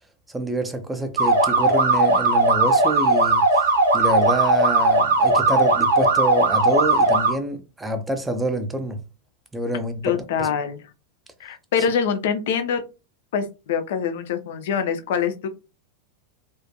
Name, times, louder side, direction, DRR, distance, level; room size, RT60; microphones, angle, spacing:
voice 1, 0.3-3.6 3.9-9.0 9.5-10.5, right 1 dB, 10° right, 0.4 m, -27 dB
sound 1, 1.2-7.3, right 2 dB, 70° right, 0.7 m, -18 dB
voice 2, 10.0-10.8 11.4-12.8 13.3-15.5, left 7 dB, 55° left, 0.4 m, -24 dB
2.4 x 2.1 x 2.6 m
figure-of-eight pair, 90°, 0 cm